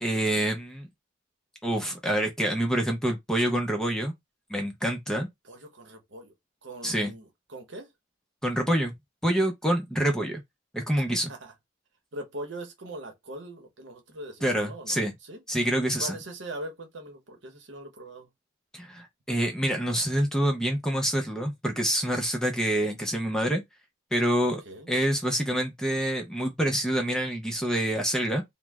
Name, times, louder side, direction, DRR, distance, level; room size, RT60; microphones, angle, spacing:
voice 1, 0.0-0.9 1.6-4.1 4.5-5.3 6.8-7.1 8.4-8.9 9.2-10.4 10.7-11.3 14.4-15.1 15.5-16.2 18.7-23.6 24.1-24.6 24.9-28.4, right 1 dB, 5° left, 0.5 m, -26 dB
voice 2, 5.4-6.3 6.6-7.9 11.3-11.5 12.1-15.4 16.0-18.3 24.7-24.9, right 1 dB, 65° right, 0.9 m, -41 dB
3.0 x 2.0 x 3.4 m
head